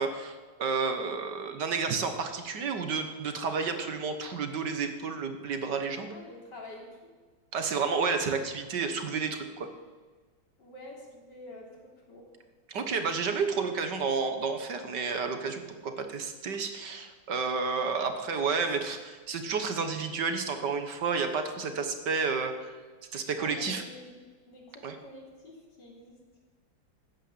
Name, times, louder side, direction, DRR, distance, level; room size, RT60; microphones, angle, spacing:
voice 1, 0.0-6.2 7.5-9.7 12.7-22.8 23.1-23.8 24.8-25.0, right 5 dB, 60° right, 7 dB, 1.8 m, -31 dB
voice 2, 6.0-7.0 10.6-12.2 23.4-26.2, left 1 dB, 60° left, -1 dB, 4.1 m, -47 dB
14.0 x 10.0 x 8.0 m, 1.4 s
omnidirectional pair, 2.1 m